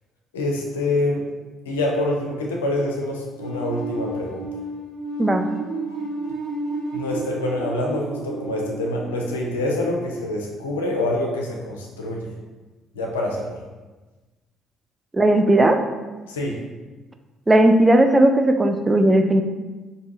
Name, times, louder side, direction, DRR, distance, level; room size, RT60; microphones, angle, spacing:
voice 1, 0.3-1.2 1.6-4.5 6.9-12.3 12.9-13.6 16.3-16.6, left 1 dB, 80° left, -1 dB, 0.5 m, -26 dB
sound 1, 3.4-10.3, right 2 dB, 85° right, 0.9 m, -32 dB
voice 2, 15.1-15.8 17.5-19.4, right 1 dB, 20° right, 6 dB, 0.4 m, -16 dB
4.5 x 2.6 x 2.6 m, 1.2 s
hypercardioid pair, 50°, 0 cm